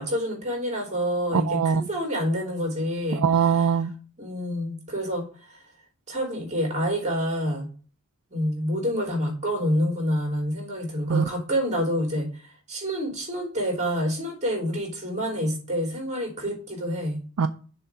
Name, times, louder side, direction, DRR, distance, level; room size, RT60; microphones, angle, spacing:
voice 1, 0.0-3.2 4.2-5.6 6.1-7.7 8.3-17.2, equal, 35° right, 3.2 m, -28 dB
voice 2, 1.3-1.9 3.1-3.9 11.1-11.2 17.4-17.5, right 6 dB, 75° right, 0.4 m, -22 dB
6.8 x 3.5 x 5.7 m
head